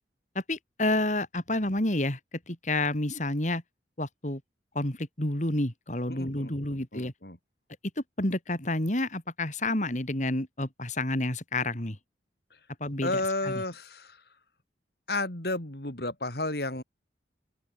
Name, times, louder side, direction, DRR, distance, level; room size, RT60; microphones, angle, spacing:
voice 1, 0.4-2.2 2.5-3.6 4.0-4.4 4.8-7.1 8.2-12.0 12.8-13.5, left 1 dB, 40° left, 3.6 m, -29 dB
voice 2, 6.1-7.4 13.0-14.2 15.1-16.8, left 2 dB, 60° left, 4.0 m, -32 dB
open air
head